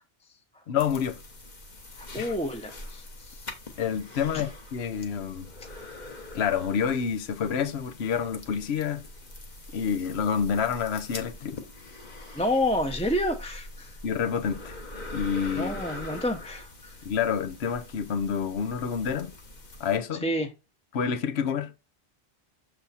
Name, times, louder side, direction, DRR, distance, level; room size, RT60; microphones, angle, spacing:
voice 1, 0.7-1.2 2.2-2.3 3.8-5.5 6.3-9.0 9.7-11.6 14.0-14.7 15.1-15.7 17.0-19.3 19.8-20.2 20.9-21.7, left 7 dB, 75° left, 1.0 m, -28 dB
sound 1, 0.8-20.0, left 1 dB, 45° left, 1.3 m, -43 dB
voice 2, 2.0-3.5 12.3-14.0 15.5-17.0 20.2-20.5, left 1 dB, 5° left, 0.7 m, -29 dB
6.9 x 4.1 x 4.1 m
omnidirectional pair, 1.1 m